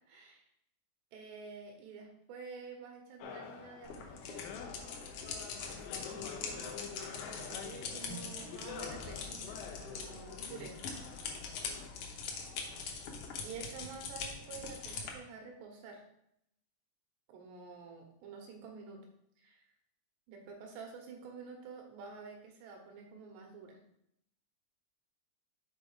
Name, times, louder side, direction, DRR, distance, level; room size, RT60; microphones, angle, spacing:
voice 1, 0.1-0.4 1.1-4.4 6.1-10.8 12.0-12.1 13.4-16.0 17.3-19.0 19.4-19.7 20.3-23.8, right 5 dB, 90° right, 1 dB, 3.3 m, -49 dB
sound 1, 3.2-11.9, left 7 dB, 90° left, 2.0 m, -47 dB
sound 2, 3.8-15.1, left 5 dB, 75° left, 1.8 m, -43 dB
7.6 x 3.8 x 4.8 m, 0.75 s
omnidirectional pair, 4.8 m